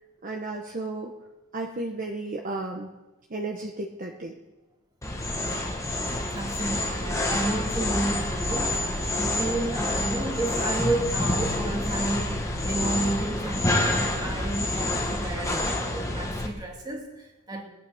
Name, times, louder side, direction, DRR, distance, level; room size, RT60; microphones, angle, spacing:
voice 1, 0.2-1.1 1.5-2.9 3.3-4.3, right 2 dB, 40° right, 0 dB, 1.1 m, -33 dB
sound 1, 5.0-16.5, left 1 dB, 15° left, 1.5 m, -28 dB
voice 2, 6.3-17.6, right 2 dB, 20° right, 1 dB, 2.3 m, -32 dB
21.5 x 9.1 x 5.1 m, 1.1 s
head